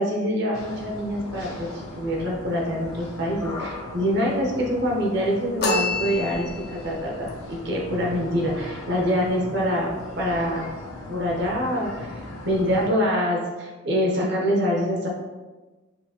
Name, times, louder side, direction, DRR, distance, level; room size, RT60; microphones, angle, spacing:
voice 1, 0.0-9.9 10.2-10.6 11.1-15.1, equal, 50° right, -2 dB, 0.9 m, -25 dB
sound 1, 0.5-12.9, left 2 dB, 85° left, 0.8 m, -38 dB
sound 2, 5.6-6.9, left 2 dB, 45° left, 0.5 m, -26 dB
5.7 x 2.8 x 2.9 m, 1.2 s
head